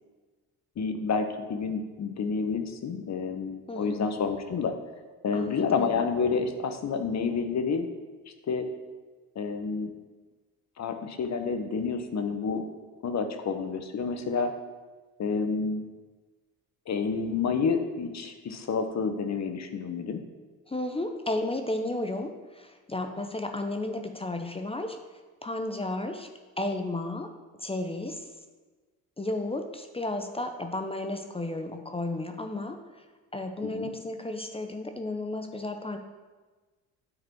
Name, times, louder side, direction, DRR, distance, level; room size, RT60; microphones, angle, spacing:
voice 1, 0.8-4.7 5.2-7.9 8.5-8.7 9.3-9.9 10.8-12.7 13.0-14.5 15.2-15.9 16.9-20.2 33.6-33.9, left 5 dB, 40° left, 7 dB, 0.9 m, -29 dB
voice 2, 3.7-4.1 5.3-5.9 20.7-25.0 25.4-26.3 26.6-27.3 27.6-28.2 29.2-32.8 33.3-36.0, left 2 dB, 15° left, 5 dB, 0.7 m, -33 dB
9.6 x 4.0 x 4.6 m, 1.3 s
hypercardioid pair, 65°, 41 cm